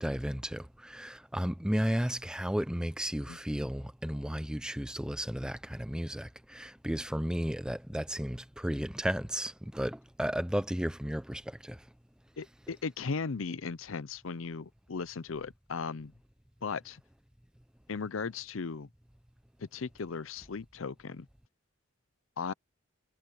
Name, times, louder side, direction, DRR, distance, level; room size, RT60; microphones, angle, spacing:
voice 1, 0.0-11.8, equal, 5° right, 0.8 m, -33 dB
voice 2, 12.4-16.1 16.6-17.0 17.9-18.9 19.6-21.3 22.4-22.5, left 5 dB, 85° left, 0.6 m, -37 dB
head